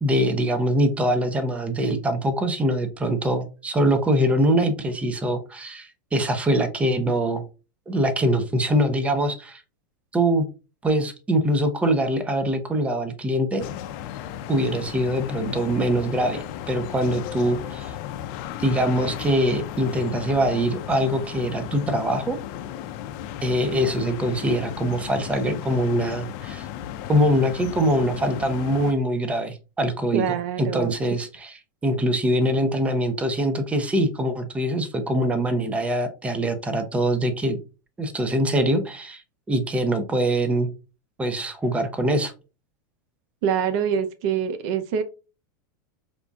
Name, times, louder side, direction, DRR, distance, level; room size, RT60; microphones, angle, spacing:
voice 1, 0.0-7.4 7.9-9.6 10.1-10.4 10.8-13.7 14.5-18.0 18.6-22.4 23.4-26.7 27.1-31.5 31.8-37.6 38.0-39.2 39.5-40.7 41.2-42.3, right 1 dB, 10° right, 0.6 m, -23 dB
sound 1, 13.6-28.9, left 11 dB, 50° left, 0.4 m, -35 dB
voice 2, 30.1-30.9 43.4-45.0, right 8 dB, 55° right, 0.5 m, -25 dB
5.1 x 2.4 x 2.3 m
supercardioid pair, 120°, 11 cm